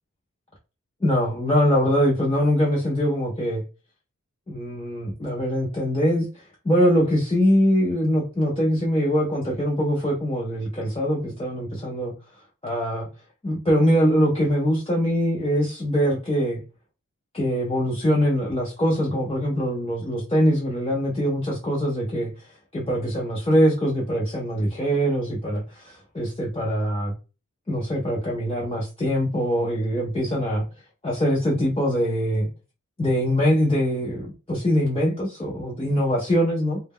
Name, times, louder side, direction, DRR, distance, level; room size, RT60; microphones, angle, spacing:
voice 1, 1.0-3.6 4.5-6.3 6.6-12.1 12.6-13.1 13.4-16.6 17.3-22.3 22.7-27.1 27.7-30.6 31.0-32.5 33.0-36.8, equal, 20° left, -4 dB, 0.5 m, -23 dB
2.1 x 2.0 x 3.5 m, 0.33 s
wide cardioid pair, 80°, 30 cm